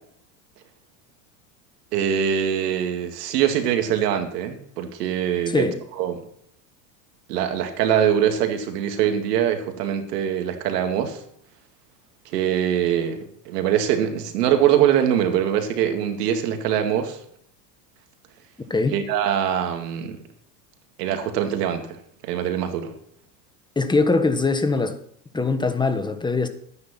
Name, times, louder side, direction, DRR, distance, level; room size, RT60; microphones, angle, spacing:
voice 1, 1.9-5.7 5.9-6.2 7.3-11.2 12.3-17.2 18.9-20.2 21.0-22.0 22.2-22.9, right 9 dB, 80° right, 2.2 m, -23 dB
voice 2, 5.5-5.8 18.7-18.9 23.8-25.0 25.3-26.5, left 3 dB, 10° left, 1.3 m, -22 dB
11.5 x 9.6 x 4.4 m
supercardioid pair, 110°, 47 cm